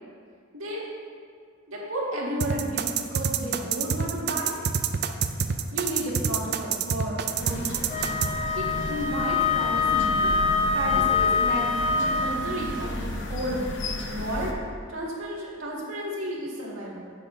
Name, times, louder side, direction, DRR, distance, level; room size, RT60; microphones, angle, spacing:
voice 1, 1.7-4.6 5.7-7.8 8.5-10.3 10.7-13.7 14.1-14.5 14.9-17.1, equal, 90° right, -4 dB, 1.9 m, -32 dB
sound 1, 2.4-8.3, right 7 dB, 55° right, 0.4 m, -26 dB
sound 2, 7.4-14.5, left 1 dB, 60° left, 0.8 m, -34 dB
Wind instrument woodwind instrument, 7.9-12.4, left 4 dB, 30° left, 0.6 m, -25 dB
9.8 x 8.6 x 2.7 m, 2.1 s
head